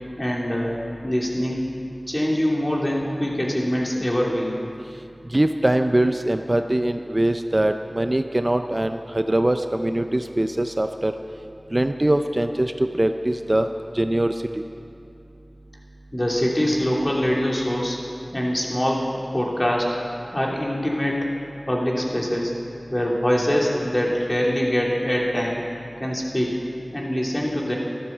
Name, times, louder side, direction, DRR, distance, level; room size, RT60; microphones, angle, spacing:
voice 1, 0.2-0.7 1.0-1.6 2.1-4.6 16.1-18.0 18.3-20.0 20.3-21.3 21.7-22.5 22.9-25.6 26.0-26.6 26.9-27.8, equal, 30° left, -2 dB, 2.8 m, -23 dB
voice 2, 5.3-11.2 11.7-13.7 13.9-14.6, right 1 dB, 35° right, 7 dB, 0.5 m, -22 dB
13.0 x 12.0 x 7.3 m, 2.6 s
wide cardioid pair, 45°, 0 cm